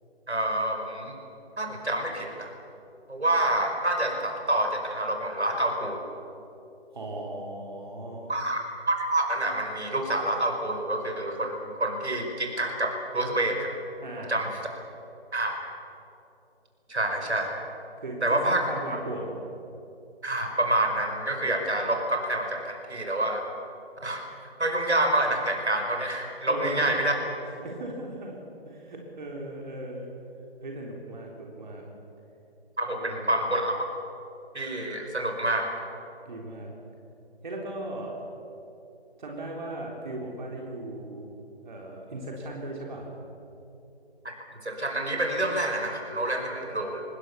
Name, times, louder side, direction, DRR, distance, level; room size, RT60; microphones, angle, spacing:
voice 1, 0.3-1.1 1.6-2.5 3.1-6.0 8.3-8.6 8.9-13.7 14.3-14.5 15.3-15.5 16.9-17.5 18.2-18.6 20.2-23.4 24.0-24.2 24.6-27.1 32.8-33.8 34.5-35.7 44.2-44.4 44.6-47.0, right 1 dB, 80° right, 3 dB, 5.5 m, -27 dB
voice 2, 6.9-8.3 14.0-14.4 18.0-19.3 26.5-27.0 27.6-28.4 28.7-30.1 30.6-31.8 32.9-33.5 36.3-36.7 37.4-38.2 39.2-41.2 41.6-43.1, right 1 dB, 45° right, -1 dB, 3.8 m, -37 dB
26.0 x 20.5 x 7.1 m, 2.9 s
figure-of-eight pair, 150°, 33 cm